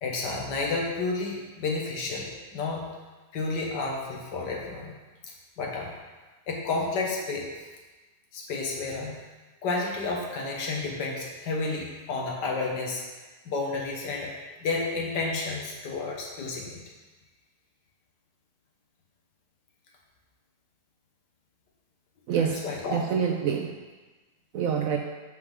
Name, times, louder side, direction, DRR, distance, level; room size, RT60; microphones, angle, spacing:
voice 1, 0.0-2.9 3.3-5.0 5.6-5.9 6.5-7.5 8.3-9.2 9.6-13.0 13.5-16.8 22.4-23.0, left 3 dB, 90° left, -1 dB, 1.7 m, -31 dB
voice 2, 22.3-23.7 24.5-25.0, right 7 dB, 70° right, 2 dB, 0.8 m, -27 dB
7.8 x 5.0 x 3.6 m, 1.2 s
omnidirectional pair, 1.8 m